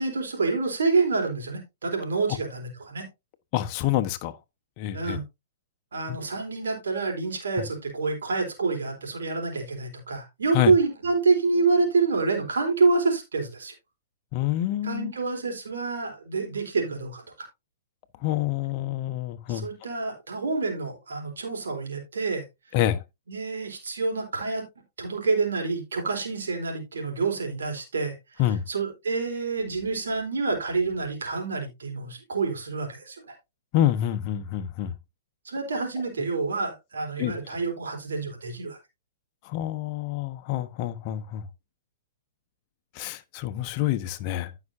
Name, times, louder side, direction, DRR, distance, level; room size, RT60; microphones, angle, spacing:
voice 1, 0.0-3.1 4.9-5.2 5.9-13.7 14.8-17.2 19.5-22.4 23.3-24.7 25.0-28.1 28.7-33.2 35.5-38.8, right 4 dB, 75° right, 4.1 m, -27 dB
voice 2, 3.5-4.3 4.8-5.2 6.1-6.2 10.5-10.7 14.3-15.1 18.2-19.7 22.7-23.0 28.4-28.6 33.7-34.9 37.2-37.3 39.5-41.4 43.0-44.5, left 13 dB, 40° left, 1.2 m, -27 dB
15.5 x 6.0 x 2.7 m
hypercardioid pair, 120°, 0 cm